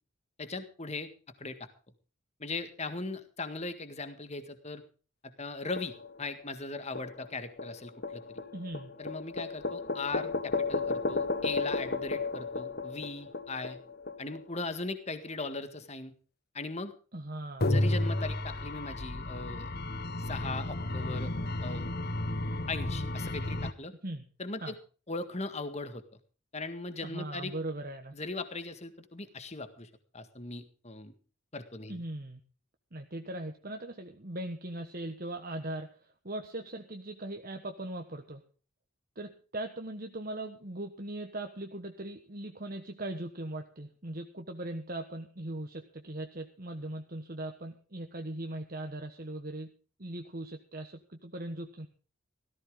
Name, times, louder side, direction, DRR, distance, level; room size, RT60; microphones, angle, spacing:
voice 1, 0.4-1.1 1.4-1.7 2.4-4.8 5.2-8.4 9.0-13.8 14.2-16.1 16.5-16.9 17.7-19.7 20.2-21.3 21.6-21.9 22.7-23.9 24.4-24.8 25.1-26.0 26.5-27.5 28.1-31.1 31.5-32.0, left 3 dB, 30° left, 9 dB, 1.8 m, -39 dB
sound 1, 5.8-6.4 7.0-14.4 17.6-23.7, left 2 dB, 50° left, 1.1 m, -33 dB
voice 2, 8.5-8.9 17.1-17.7 24.0-24.2 24.6-24.7 27.0-28.1 31.9-32.4 32.9-38.4 39.1-49.7 50.0-51.9, right 1 dB, 45° right, 5 dB, 1.4 m, -39 dB
17.0 x 15.0 x 3.8 m, 0.38 s
head